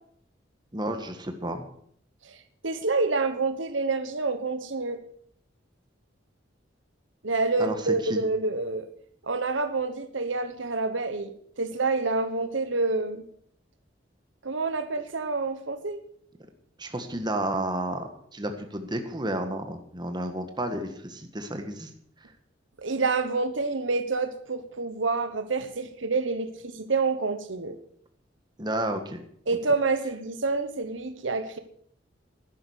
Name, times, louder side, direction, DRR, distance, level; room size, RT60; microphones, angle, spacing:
voice 1, 0.7-1.7 7.6-7.7 8.0-8.2 16.8-21.9 28.6-29.2, right 1 dB, 25° right, 6 dB, 1.5 m, -31 dB
voice 2, 2.6-5.0 7.2-8.9 9.3-13.3 14.4-16.0 22.8-27.8 29.5-31.6, right 3 dB, 80° right, 9 dB, 1.2 m, -28 dB
11.5 x 10.5 x 6.5 m, 0.65 s
head